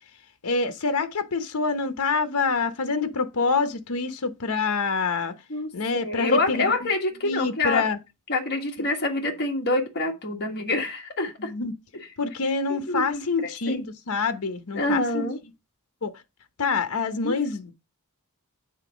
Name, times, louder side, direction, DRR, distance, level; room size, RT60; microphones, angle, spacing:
voice 1, 0.4-5.3 5.7-6.6 7.2-8.0 11.4-11.7 12.2-15.2 16.0-16.1 16.6-17.7, left 4 dB, 80° left, 0.9 m, -26 dB
voice 2, 5.5-7.8 8.3-11.5 12.7-13.9 14.7-15.4 17.2-17.3, left 2 dB, 50° left, 1.5 m, -27 dB
8.1 x 3.9 x 5.0 m
head